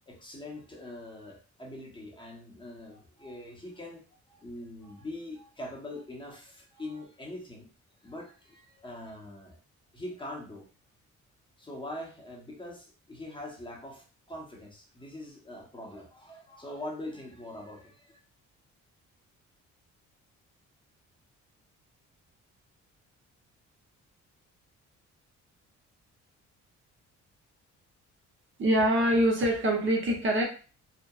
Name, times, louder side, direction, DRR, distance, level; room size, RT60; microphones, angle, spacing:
voice 1, 0.1-7.7 8.0-9.6 9.9-10.7 11.6-18.2, left 1 dB, 15° left, -2 dB, 0.8 m, -43 dB
voice 2, 28.6-30.4, right 1 dB, 40° right, 1 dB, 0.7 m, -24 dB
2.8 x 2.1 x 2.3 m, 0.36 s
cardioid pair, 90°, 30 cm